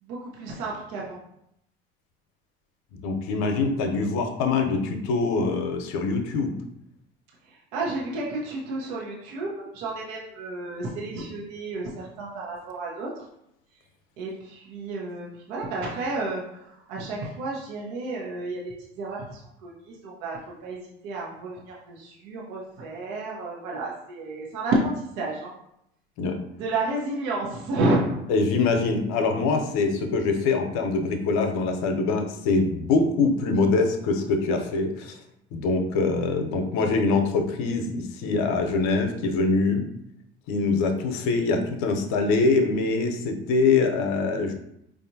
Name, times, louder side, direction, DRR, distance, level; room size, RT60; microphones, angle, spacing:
voice 1, 0.0-1.2 7.4-13.2 14.2-25.5 26.6-28.2, right 2 dB, 70° right, -3 dB, 1.0 m, -31 dB
voice 2, 2.9-6.6 26.2-26.4 28.3-35.2 35.5-39.9 40.5-44.5, left 3 dB, 65° left, 5 dB, 0.7 m, -24 dB
4.7 x 2.5 x 2.7 m, 0.77 s
hypercardioid pair, 70°, 29 cm